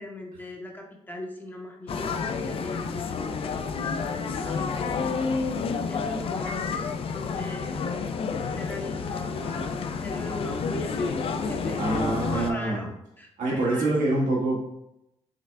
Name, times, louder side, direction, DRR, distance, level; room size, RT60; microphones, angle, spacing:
voice 1, 0.0-3.4 4.4-5.2 5.9-7.9 8.5-11.2 11.5-12.9 13.2-13.9, left 1 dB, 15° left, 1 dB, 0.8 m, -39 dB
sound 1, 1.9-12.5, left 5 dB, 50° left, 0.4 m, -30 dB
voice 2, 11.8-12.8 13.4-14.6, right 2 dB, 80° right, -4 dB, 1.6 m, -25 dB
5.6 x 2.4 x 3.2 m, 0.82 s
cardioid pair, 105°, 12 cm